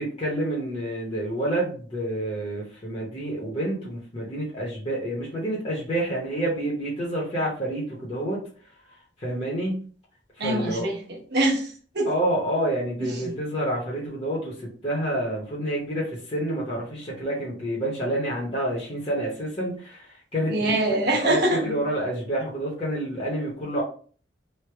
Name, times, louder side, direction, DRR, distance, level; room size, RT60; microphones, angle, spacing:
voice 1, 0.0-8.5 9.2-9.8 10.4-10.9 12.1-20.7 21.1-23.8, right 1 dB, 30° left, -5 dB, 0.8 m, -28 dB
voice 2, 10.4-12.1 13.0-13.3 20.5-21.7, right 1 dB, 60° right, 0 dB, 1.0 m, -25 dB
3.2 x 2.1 x 3.3 m, 0.43 s
head